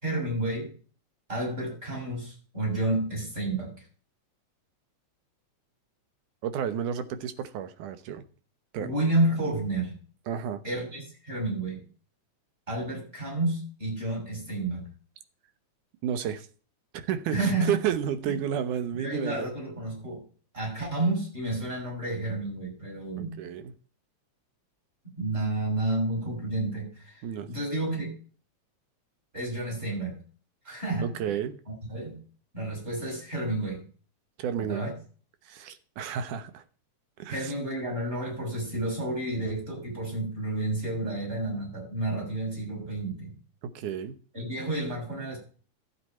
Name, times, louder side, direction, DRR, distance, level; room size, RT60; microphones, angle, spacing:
voice 1, 0.0-0.7 1.3-3.7 8.8-10.0 10.6-11.8 12.7-14.8 17.3-17.7 18.2-18.3 18.9-20.2 20.5-23.4 25.2-27.2 27.5-28.1 29.3-30.2 30.6-31.1 31.7-32.2 32.5-33.8 34.6-34.9 37.3-43.3 44.3-45.4, right 2 dB, 20° right, 0 dB, 6.4 m, -30 dB
voice 2, 6.4-8.3 8.7-8.9 10.3-10.6 16.0-16.5 16.9-19.5 23.2-23.7 27.2-27.5 31.0-31.6 34.4-34.8 35.5-36.6 37.2-37.5 43.6-44.2, right 9 dB, 90° right, 10 dB, 2.5 m, -31 dB
13.0 x 8.2 x 4.4 m, 0.39 s
omnidirectional pair, 3.5 m